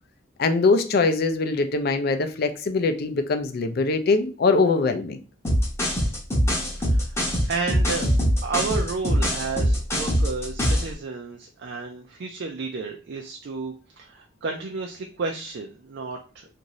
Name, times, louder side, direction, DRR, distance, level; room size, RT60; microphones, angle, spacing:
voice 1, 0.4-5.2, left 3 dB, 55° left, 0.4 m, -22 dB
sound 1, 5.4-10.9, equal, 15° left, 0.7 m, -22 dB
voice 2, 6.8-7.2 7.4-8.1 8.4-16.4, right 4 dB, 60° right, 0.4 m, -32 dB
2.6 x 2.5 x 3.0 m
head